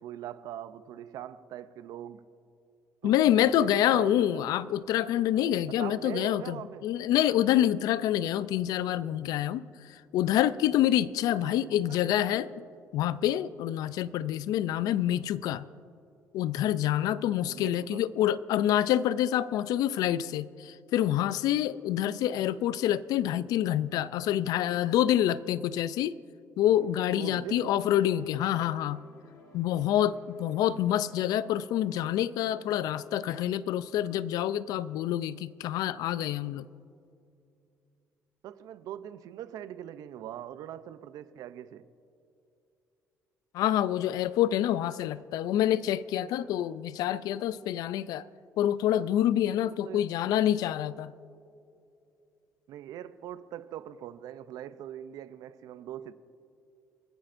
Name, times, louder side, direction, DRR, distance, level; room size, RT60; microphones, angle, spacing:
voice 1, 0.0-2.2 3.0-4.5 5.7-6.9 11.4-12.1 17.5-18.0 27.2-27.7 38.4-41.9 49.6-50.3 52.7-56.1, right 11 dB, 75° right, 0.5 m, -42 dB
voice 2, 3.0-6.6 6.8-9.6 10.1-12.5 12.9-15.7 16.3-26.1 26.6-29.0 29.5-36.7 43.5-48.2 48.6-51.1, left 12 dB, 80° left, 0.4 m, -27 dB
sound 1, 26.7-33.5, left 3 dB, 55° left, 1.5 m, -56 dB
29.0 x 10.5 x 2.6 m
cardioid pair, 130°, 6 cm